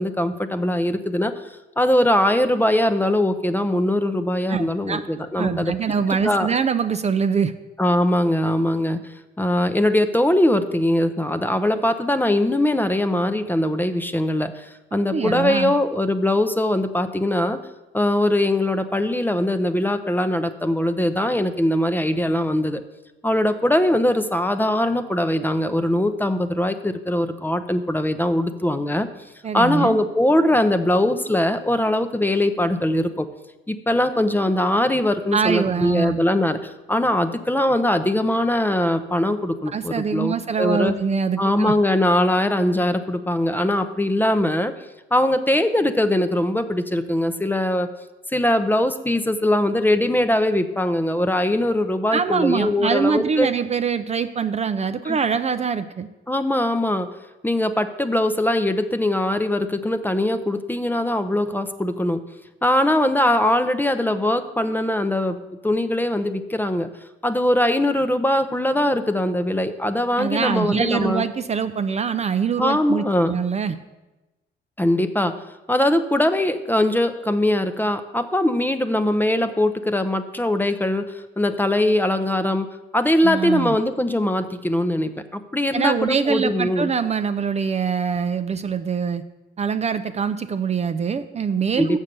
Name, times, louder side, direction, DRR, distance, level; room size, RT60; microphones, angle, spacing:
voice 1, 0.0-1.3 1.8-5.9 6.2-6.5 7.8-9.0 9.4-17.6 17.9-22.8 23.2-29.1 29.5-33.3 33.7-36.6 36.9-40.9 41.4-44.7 45.1-47.9 48.3-53.5 55.1-55.2 56.3-57.1 57.4-62.2 62.6-66.9 67.2-71.2 72.6-73.3 74.8-75.4 75.7-82.7 82.9-86.9 91.8-92.0, left 1 dB, 10° left, 10 dB, 0.6 m, -21 dB
voice 2, 4.5-5.0 5.4-7.5 15.1-15.7 29.4-30.0 35.3-36.2 39.7-41.7 52.1-56.1 70.2-73.8 83.2-83.8 85.7-89.2 89.6-92.0, right 6 dB, 35° right, 10 dB, 0.4 m, -24 dB
7.2 x 6.5 x 6.7 m, 1.1 s
cardioid pair, 90°, 20 cm